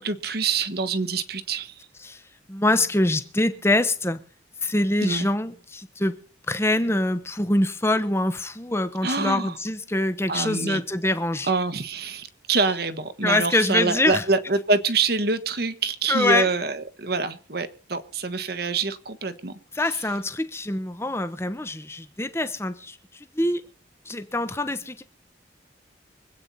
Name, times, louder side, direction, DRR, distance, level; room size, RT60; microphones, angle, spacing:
voice 1, 0.0-1.8 5.0-5.3 9.0-9.6 10.3-10.8 11.5-19.6 19.9-20.0, right 4 dB, 55° right, 1.3 m, -26 dB
voice 2, 2.5-4.2 4.6-6.1 6.5-11.5 13.2-14.2 16.1-16.5 19.8-23.0 23.3-23.6 24.1-25.0, left 1 dB, 15° left, 0.9 m, -24 dB
25.0 x 8.9 x 4.2 m
head